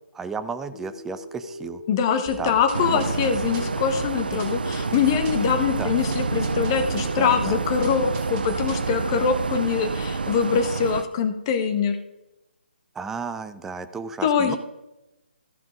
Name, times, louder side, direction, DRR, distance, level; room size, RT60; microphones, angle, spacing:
voice 1, 0.1-1.8 2.4-2.6 2.9-3.0 5.8-5.9 7.2-7.6 13.0-14.6, right 5 dB, 5° right, 10 dB, 0.4 m, -33 dB
sound 1, 0.7-10.7, left 2 dB, 60° left, 1.5 m, -42 dB
voice 2, 1.9-12.0 14.2-14.6, left 7 dB, 25° left, 8 dB, 1.1 m, -23 dB
sound 2, 2.3-8.9, right 1 dB, 20° right, 2.1 m, -42 dB
sound 3, 2.7-11.0, right 4 dB, 60° right, 0.5 m, -28 dB
13.5 x 5.9 x 5.1 m, 0.95 s
figure-of-eight pair, 140°, 6 cm